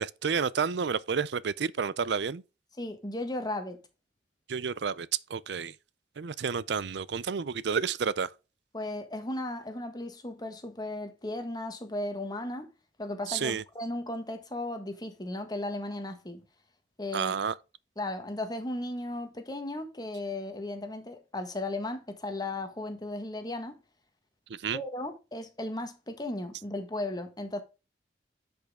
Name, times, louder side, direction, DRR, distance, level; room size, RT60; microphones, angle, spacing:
voice 1, 0.0-2.4 4.5-5.8 6.2-8.3 13.3-13.6 17.1-17.6 24.5-24.8, right 6 dB, 70° right, 0.5 m, -30 dB
voice 2, 2.8-3.8 8.7-12.7 13.0-16.4 17.0-17.3 18.0-23.8 24.7-27.6, left 1 dB, 20° left, 1.4 m, -35 dB
10.5 x 5.5 x 3.6 m
head